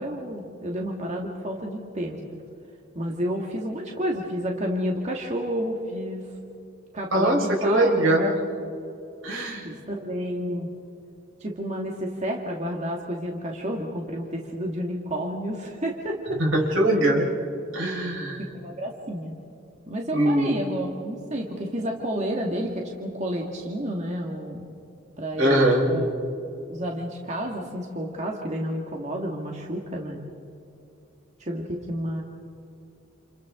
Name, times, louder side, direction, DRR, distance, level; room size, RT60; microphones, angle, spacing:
voice 1, 0.0-2.2 3.0-6.2 6.9-8.2 9.6-10.7 11.4-16.4 18.4-19.3 19.9-24.7 25.2-26.1 26.7-30.2 31.4-32.2, equal, 35° right, 0 dB, 1.8 m, -30 dB
voice 2, 7.6-8.3 9.2-9.7 16.4-17.3 17.7-18.4 20.1-20.5 25.4-25.9, right 1 dB, 80° right, -1 dB, 5.1 m, -21 dB
29.5 x 29.0 x 3.8 m, 2.7 s
head